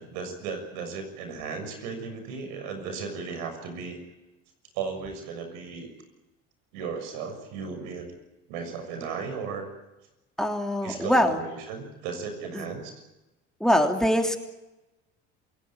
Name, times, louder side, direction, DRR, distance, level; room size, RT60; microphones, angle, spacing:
voice 1, 0.0-4.0 4.7-5.9 6.7-8.1 8.5-9.7 10.8-13.0, right 5 dB, 85° right, 7 dB, 6.8 m, -35 dB
voice 2, 10.4-11.4 12.5-12.6 13.6-14.4, equal, ahead, 3 dB, 3.1 m, -23 dB
28.0 x 17.0 x 9.0 m, 1.0 s
supercardioid pair, 95°, 30 cm